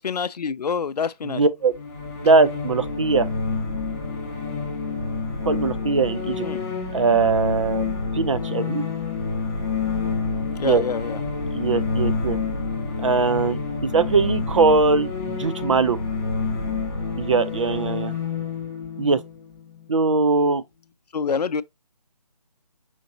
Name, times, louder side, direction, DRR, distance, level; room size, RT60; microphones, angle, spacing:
voice 1, 0.0-1.4 6.4-6.6 10.6-11.2 21.1-21.6, left 6 dB, 85° left, 0.4 m, -26 dB
voice 2, 1.2-1.7 2.2-3.3 5.5-6.5 6.9-8.8 10.6-10.8 11.5-12.4 13.0-16.0 17.2-18.1 19.0-19.2 19.9-20.6, right 4 dB, 50° right, 0.6 m, -21 dB
sound 1, 1.7-20.4, left 4 dB, 25° left, 2.1 m, -28 dB
5.2 x 3.9 x 2.6 m
figure-of-eight pair, 155°, 20 cm